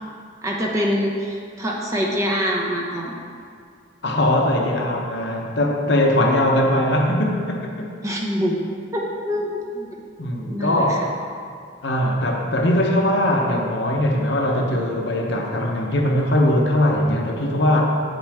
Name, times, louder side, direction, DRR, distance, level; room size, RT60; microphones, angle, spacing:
voice 1, 0.4-3.2 8.0-8.6 8.9-10.0 10.5-11.1, equal, 15° right, -3 dB, 0.9 m, -25 dB
voice 2, 4.0-7.9 10.2-11.1 11.8-17.9, left 1 dB, 60° left, 0 dB, 0.9 m, -20 dB
8.0 x 7.6 x 3.6 m, 2.2 s
head